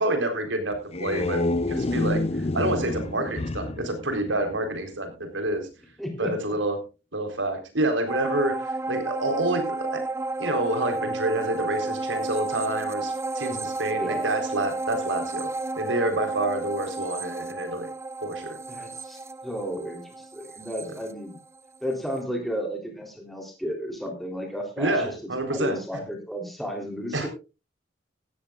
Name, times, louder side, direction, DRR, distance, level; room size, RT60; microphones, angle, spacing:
voice 1, 0.0-1.4 1.7-5.7 6.2-6.8 7.1-10.0 10.4-15.5 15.8-17.9 18.2-18.6 20.8-20.9 24.8-26.0 27.1-27.3, right 2 dB, 85° right, 6 dB, 3.9 m, -28 dB
sound 1, 0.7-4.9, left 2 dB, 35° left, 0.7 m, -29 dB
voice 2, 6.0-6.3 14.0-14.2 18.7-21.4 21.8-27.3, equal, ahead, 1 dB, 3.3 m, -33 dB
sound 2, 8.1-21.8 22.2-22.3, right 2 dB, 15° right, 0.5 m, -32 dB
17.0 x 14.0 x 2.4 m, 0.30 s
head